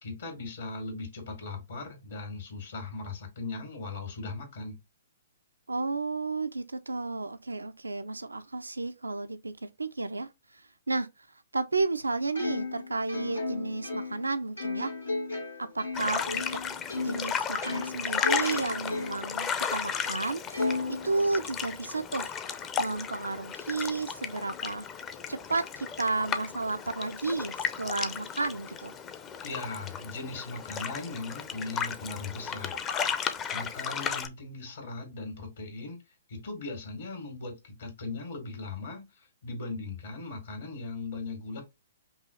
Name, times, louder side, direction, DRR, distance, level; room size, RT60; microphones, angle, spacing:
voice 1, 0.0-4.8 29.4-32.8 33.5-36.0 36.3-41.6, left 3 dB, 65° left, 2.1 m, -38 dB
voice 2, 5.7-11.3 11.5-14.9 15.6-16.4 17.0-22.3 22.8-24.9 25.3-28.9, right 3 dB, 90° right, 0.4 m, -32 dB
Plucked string instrument, 12.3-17.3 17.6-19.3 19.8-19.9 20.5-21.7, left 3 dB, 90° left, 2.2 m, -35 dB
sound 1, 15.9-34.3, left 7 dB, 20° left, 0.6 m, -34 dB
5.4 x 2.4 x 2.9 m
figure-of-eight pair, 125°, 0 cm